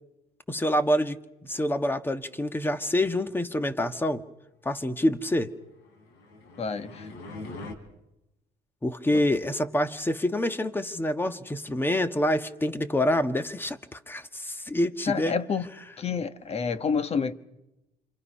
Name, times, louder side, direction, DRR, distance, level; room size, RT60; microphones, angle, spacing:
voice 1, 0.5-1.2 1.4-4.2 4.6-5.5 8.8-15.3, left 1 dB, 10° left, 1.4 m, -26 dB
sound 1, 5.8-7.7, left 2 dB, 85° left, 4.0 m, -42 dB
voice 2, 6.6-7.1 9.1-9.2 15.1-15.6 16.0-17.3, left 5 dB, 35° left, 1.3 m, -28 dB
28.5 x 27.0 x 5.6 m
cardioid pair, 110°, 17 cm